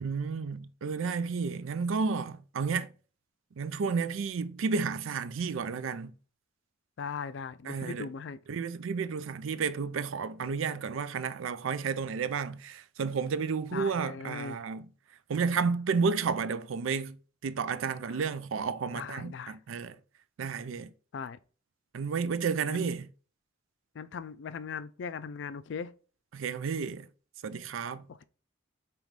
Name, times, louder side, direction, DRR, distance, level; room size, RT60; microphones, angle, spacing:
voice 1, 0.0-2.9 3.6-6.1 7.7-8.1 8.5-14.9 15.3-17.2 17.4-20.0 20.4-20.9 21.9-23.1 26.3-27.1 27.4-28.0, right 5 dB, 75° right, 0.4 m, -31 dB
voice 2, 7.0-8.4 13.7-14.6 18.9-19.6 21.1-21.4 22.7-22.9 23.9-25.9, left 6 dB, 60° left, 0.3 m, -39 dB
5.1 x 3.1 x 3.1 m
head